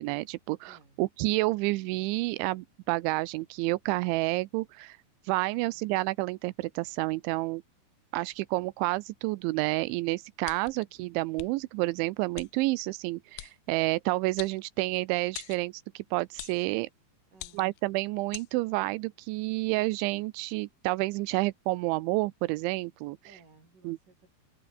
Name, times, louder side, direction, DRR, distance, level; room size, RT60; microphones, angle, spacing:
voice 1, 0.0-5.0 5.3-7.6 8.1-16.9 17.6-23.2 23.8-24.0, right 21 dB, 85° right, 3.1 m, -29 dB
voice 2, 0.6-1.0 5.5-5.9 10.7-10.9 17.3-17.8 23.2-24.4, right 4 dB, 45° right, 8.1 m, -59 dB
sound 1, 10.4-10.8 11.4-11.5 12.4-12.5 13.4-13.5 14.4-15.0 15.3-15.6 16.4-16.6 17.3-17.8 18.3-18.5, left 21 dB, 80° left, 2.6 m, -42 dB
open air
omnidirectional pair, 5.3 m